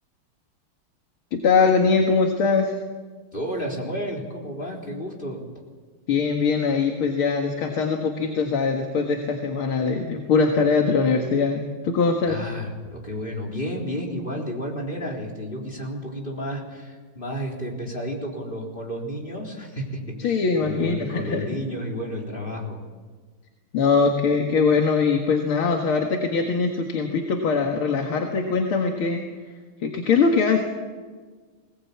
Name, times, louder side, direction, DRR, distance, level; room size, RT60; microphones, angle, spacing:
voice 1, 1.3-2.8 6.1-12.4 20.2-21.6 23.7-29.2 29.8-30.6, left 5 dB, 85° left, 3 dB, 2.6 m, -22 dB
voice 2, 3.3-5.4 12.3-20.3 20.6-22.8, equal, 25° left, -1 dB, 4.1 m, -31 dB
21.5 x 18.5 x 8.6 m, 1.4 s
omnidirectional pair, 2.3 m